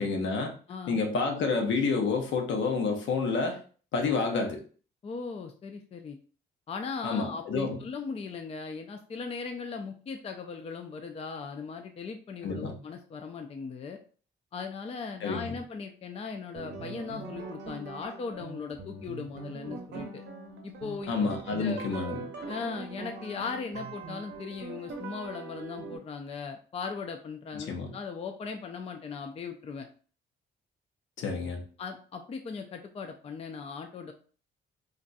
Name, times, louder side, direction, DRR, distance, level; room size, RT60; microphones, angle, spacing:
voice 1, 0.0-0.5 0.9-3.6 3.9-4.6 7.0-7.8 12.4-12.8 15.2-15.6 21.1-22.2 27.5-27.9 31.2-31.6, left 4 dB, 70° left, 3 dB, 0.8 m, -29 dB
voice 2, 0.7-1.0 5.0-6.2 6.7-14.0 14.5-20.2 20.6-21.2 21.6-21.8 22.5-29.9 31.8-34.1, left 5 dB, 30° left, 5 dB, 0.4 m, -38 dB
sound 1, 16.6-26.0, right 4 dB, 60° right, 0.7 m, -42 dB
2.5 x 2.2 x 3.9 m, 0.41 s
cardioid pair, 90°, 20 cm